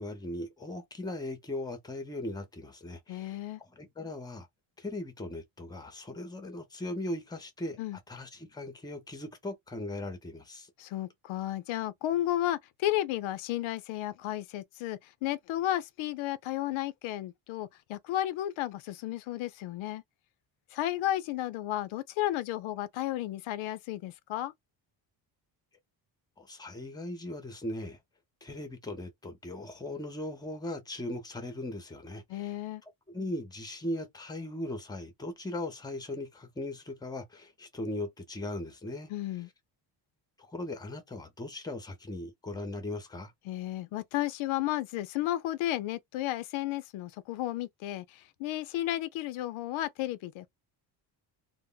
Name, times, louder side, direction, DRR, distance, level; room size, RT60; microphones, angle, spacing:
voice 1, 0.0-4.5 4.8-7.8 8.1-10.7 26.4-28.0 28.4-32.5 33.1-39.1 40.4-43.3, left 1 dB, 10° left, 0.6 m, -38 dB
voice 2, 3.1-3.6 7.8-8.0 10.8-20.0 20.7-24.5 32.3-32.8 39.1-39.5 43.5-50.5, left 14 dB, 85° left, 0.5 m, -33 dB
2.1 x 2.1 x 3.7 m
cardioid pair, 130°, 46 cm